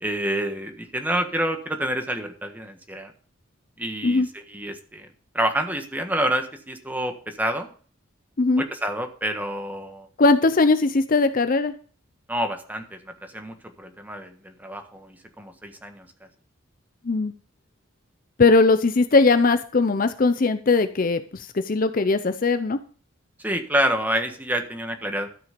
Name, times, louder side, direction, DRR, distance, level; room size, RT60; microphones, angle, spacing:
voice 1, 0.0-3.1 3.8-5.1 5.3-7.7 8.6-10.1 12.3-13.0 13.3-16.1 23.4-25.3, right 1 dB, 10° right, 5 dB, 1.4 m, -28 dB
voice 2, 10.2-11.7 17.0-17.3 18.4-22.8, left 3 dB, 45° left, 10 dB, 0.6 m, -19 dB
13.0 x 6.1 x 5.1 m, 0.42 s
head